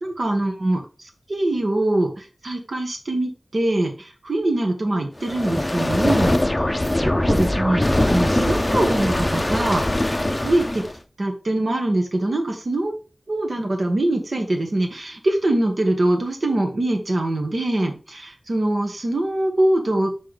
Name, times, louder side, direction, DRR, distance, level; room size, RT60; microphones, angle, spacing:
voice 1, 0.0-6.3 7.2-7.8 8.1-10.8 11.2-12.9 13.3-20.1, right 1 dB, 70° right, 3 dB, 1.6 m, -23 dB
sound 1, 5.2-11.0, left 1 dB, 25° left, 0.6 m, -21 dB
6.2 x 3.6 x 5.0 m, 0.34 s
wide cardioid pair, 70°, 0 cm